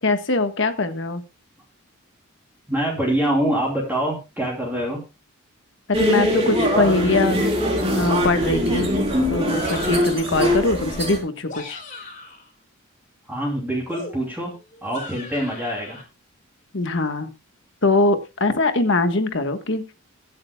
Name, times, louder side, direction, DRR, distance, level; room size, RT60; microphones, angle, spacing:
voice 1, 0.0-1.2 6.0-7.4 7.9-8.9 9.3-11.8 16.7-17.3 17.8-19.8, left 2 dB, 55° left, 8 dB, 1.4 m, -22 dB
voice 2, 2.7-5.0 13.3-14.5 14.8-16.0, right 1 dB, 10° right, -3 dB, 3.1 m, -25 dB
sound 1, 5.9-11.2, equal, 30° right, 3.7 m, -22 dB
sound 2, 9.5-10.4 11.3-12.5 13.9-16.0, left 3 dB, 40° left, 3.6 m, -39 dB
22.0 x 7.8 x 2.3 m, 0.28 s
head